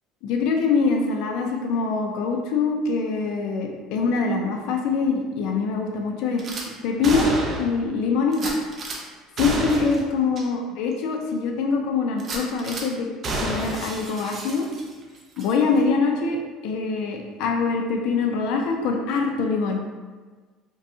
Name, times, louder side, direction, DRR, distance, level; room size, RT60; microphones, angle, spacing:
voice 1, 0.2-6.4 6.8-7.3 7.6-8.5 9.4-13.1 13.4-14.6 15.4-16.4 16.6-19.8, left 4 dB, 65° left, 2 dB, 0.5 m, -24 dB
Gunshot gunfire / Glass, 6.4-6.6 7.0-7.8 8.3-9.0 9.4-10.0 10.3-10.4 10.9-11.0 12.2-12.8 13.2-15.0 15.4-15.5, right 2 dB, 30° right, 0.6 m, -30 dB
5.4 x 2.3 x 2.7 m, 1.4 s
cardioid pair, 150°, 0 cm